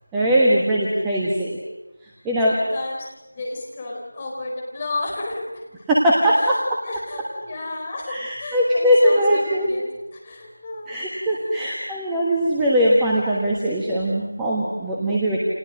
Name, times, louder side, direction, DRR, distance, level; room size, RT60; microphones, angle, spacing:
voice 1, 0.1-1.6 2.2-2.5 5.9-6.6 8.1-9.7 10.9-15.4, equal, 5° right, -6 dB, 1.4 m, -20 dB
voice 2, 2.4-3.0 3.3-5.6 6.3-10.9 11.4-11.5 11.9-12.0, left 2 dB, 15° left, -3 dB, 4.3 m, -33 dB
30.0 x 28.0 x 6.4 m, 1.1 s
figure-of-eight pair, 170°, 0 cm